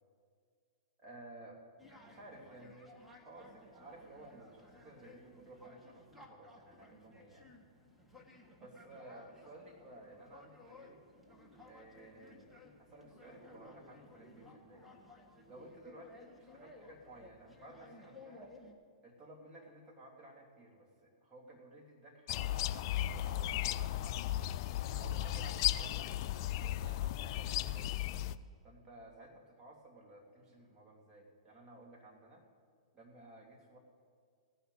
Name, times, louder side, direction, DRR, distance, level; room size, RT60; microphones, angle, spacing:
voice 1, 1.0-1.6 2.0-7.5 8.6-11.1 11.6-12.4 12.8-14.9 15.5-18.5 19.0-24.2 25.0-28.0 28.6-32.5 32.9-33.8, right 2 dB, 20° right, -2 dB, 2.8 m, -55 dB
sound 1, 1.8-18.7, left 2 dB, 5° right, 1.7 m, -58 dB
sound 2, 22.3-28.3, left 13 dB, 50° left, 0.4 m, -35 dB
16.5 x 5.7 x 9.0 m, 2.1 s
hypercardioid pair, 115°, 3 cm